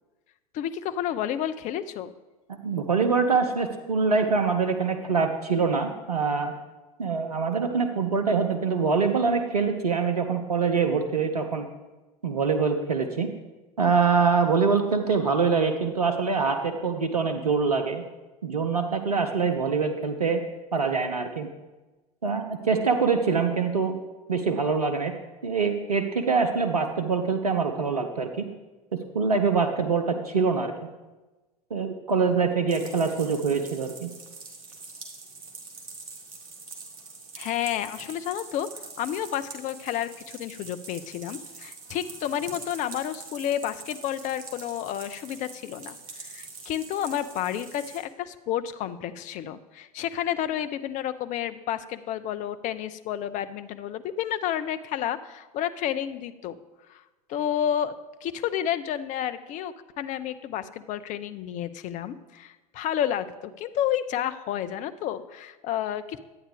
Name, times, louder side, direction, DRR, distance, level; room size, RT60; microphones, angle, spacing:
voice 1, 0.5-2.1 37.4-38.7 39.0-56.6 56.9-57.0 57.3-57.9 58.2-63.3 63.6-66.2, left 10 dB, 40° left, 11 dB, 0.6 m, -30 dB
voice 2, 2.5-6.5 7.0-11.7 12.2-13.3 13.8-18.0 18.4-20.4 20.7-21.5 22.2-24.0 24.3-25.1 25.4-28.4 28.9-30.7 31.7-34.1, right 5 dB, 85° right, 5 dB, 0.6 m, -24 dB
sound 1, 32.7-48.0, right 4 dB, 65° right, 2.0 m, -44 dB
11.5 x 8.7 x 3.3 m, 1.2 s
figure-of-eight pair, 75°, 19 cm